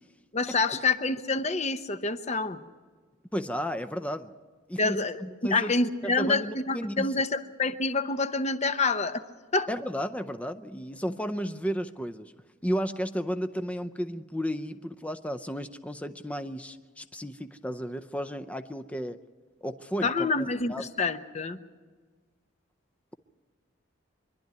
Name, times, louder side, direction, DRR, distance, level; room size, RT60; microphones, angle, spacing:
voice 1, 0.3-2.6 4.8-9.2 9.5-9.7 20.0-21.6, left 3 dB, 35° left, 10 dB, 0.9 m, -27 dB
voice 2, 3.3-4.3 4.7-5.7 6.0-7.1 9.7-12.3 12.6-19.2 19.6-20.9, equal, 5° left, 10 dB, 0.6 m, -33 dB
25.0 x 12.0 x 9.5 m, 1.5 s
head